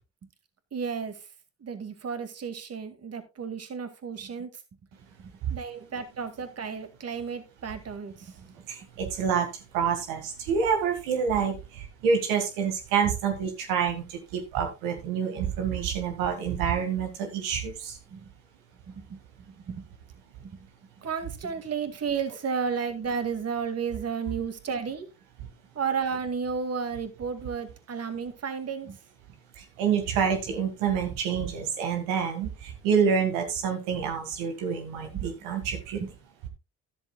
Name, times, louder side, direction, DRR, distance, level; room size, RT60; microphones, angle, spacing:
voice 1, 0.7-1.2 1.6-4.5 5.2-8.5 18.1-18.3 18.9-19.2 19.5-19.8 20.4-20.7 21.0-25.1 25.7-29.0 35.1-35.2 36.0-36.1, right 6 dB, 50° right, 9 dB, 2.2 m, -33 dB
voice 2, 8.5-18.0 29.6-36.0, right 7 dB, 90° right, 5 dB, 1.9 m, -27 dB
12.5 x 11.0 x 2.3 m, 0.26 s
supercardioid pair, 65°, 33 cm